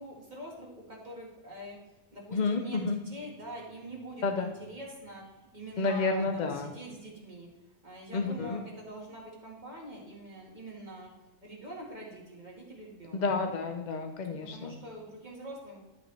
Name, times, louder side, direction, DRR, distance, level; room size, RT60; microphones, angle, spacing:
voice 1, 0.0-1.8 2.1-5.2 5.5-7.5 7.8-11.1 11.4-13.3 14.5-15.8, right 1 dB, 30° right, -2 dB, 1.9 m, -44 dB
voice 2, 2.3-3.0 4.2-4.5 5.8-6.7 8.1-8.6 13.1-14.7, left 4 dB, 50° left, 5 dB, 0.5 m, -30 dB
11.5 x 5.2 x 3.3 m, 1.1 s
omnidirectional pair, 1.5 m